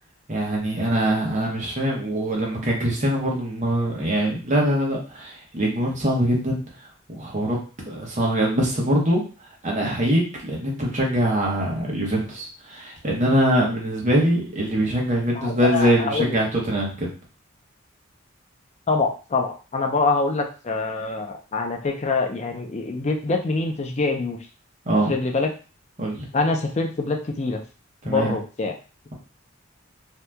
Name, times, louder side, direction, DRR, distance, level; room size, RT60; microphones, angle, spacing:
voice 1, 0.3-7.6 7.8-9.2 9.6-17.1 24.8-25.1 26.0-26.3 28.0-28.4, right 1 dB, 40° right, -2 dB, 1.0 m, -23 dB
voice 2, 15.4-16.4 18.9-24.4 25.1-25.5 26.3-27.6 28.0-28.7, left 3 dB, 35° left, 3 dB, 0.5 m, -25 dB
2.8 x 2.4 x 3.3 m, 0.35 s
head